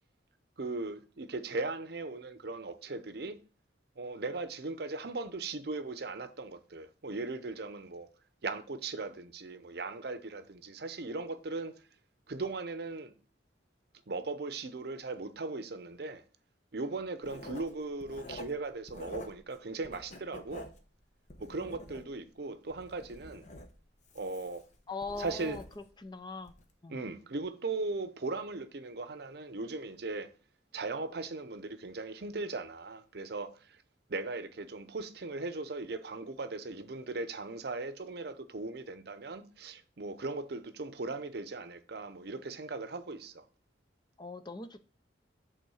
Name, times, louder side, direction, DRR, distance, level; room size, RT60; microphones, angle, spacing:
voice 1, 0.6-3.4 4.0-8.1 8.4-11.8 12.3-13.1 14.1-16.2 16.7-20.7 21.4-23.4 24.1-24.6 25.2-25.6 26.9-30.3 30.7-33.8 34.1-43.4, right 3 dB, 60° right, 0.7 m, -38 dB
Writing, 17.2-19.5 19.8-22.3 22.7-26.0 26.4-26.6, left 1 dB, 40° left, 1.0 m, -48 dB
voice 2, 24.9-25.6 26.0-26.5 26.8-27.0 44.2-44.8, left 3 dB, 25° left, 0.5 m, -40 dB
8.3 x 3.7 x 6.3 m
head